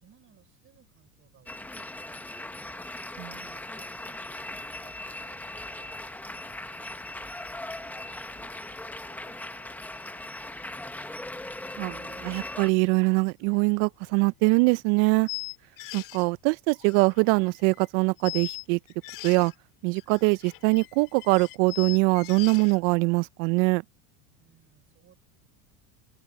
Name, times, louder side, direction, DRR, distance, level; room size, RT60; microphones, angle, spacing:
voice 1, 0.0-2.9 3.7-4.2 4.4-7.3 7.6-11.1 24.4-25.2, right 9 dB, 30° right, 5.3 m, -60 dB
sound 1, 1.5-12.7, left 2 dB, 5° left, 0.9 m, -39 dB
voice 2, 11.8-15.3 15.9-18.8 19.2-19.5 19.8-23.8, right 29 dB, 55° right, 0.5 m, -23 dB
sound 2, 13.5-13.6 14.1-14.2 15.3-16.3 16.7-17.9 18.2-19.5 20.0-22.8, left 23 dB, 50° left, 1.8 m, -40 dB
open air
supercardioid pair, 135°, 43 cm